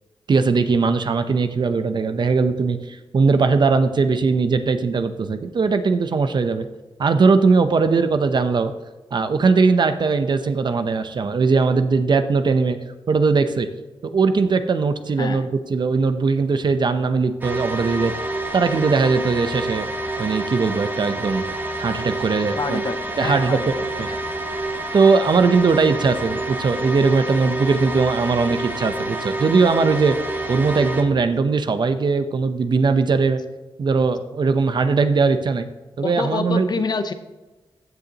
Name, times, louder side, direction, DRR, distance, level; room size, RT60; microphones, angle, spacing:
voice 1, 0.3-6.7 7.0-8.7 9.1-12.8 13.1-13.7 14.0-18.1 18.5-19.9 20.2-21.4 21.8-22.8 23.2-23.7 24.0-24.1 24.9-30.2 30.5-33.4 33.8-35.7 36.0-36.7, right 4 dB, 55° right, 9 dB, 0.8 m, -19 dB
voice 2, 15.2-15.5 22.5-24.2 36.0-37.1, left 4 dB, 50° left, 9 dB, 0.8 m, -27 dB
sound 1, 17.4-31.0, right 2 dB, 20° right, 1.3 m, -28 dB
15.0 x 6.7 x 3.0 m, 1.1 s
cardioid pair, 80°, 9 cm